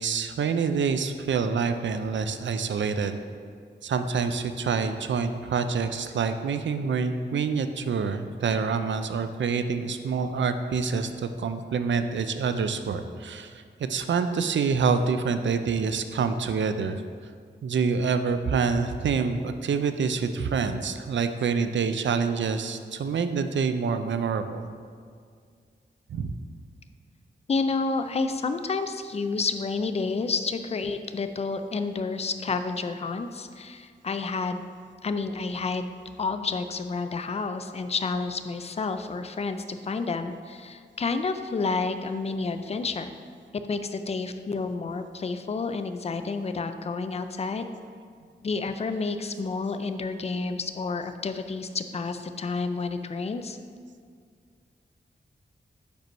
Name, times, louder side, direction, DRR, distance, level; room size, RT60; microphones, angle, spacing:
voice 1, 0.0-3.2 3.8-17.0 17.6-24.7 26.1-26.3 28.3-28.4, right 5 dB, 75° right, 9 dB, 0.4 m, -27 dB
voice 2, 27.5-34.6 35.0-35.9 36.2-43.1 43.7-47.7 48.4-53.6, left 4 dB, 35° left, 9 dB, 0.4 m, -30 dB
5.2 x 4.5 x 5.3 m, 2.1 s
wide cardioid pair, 90°, 19 cm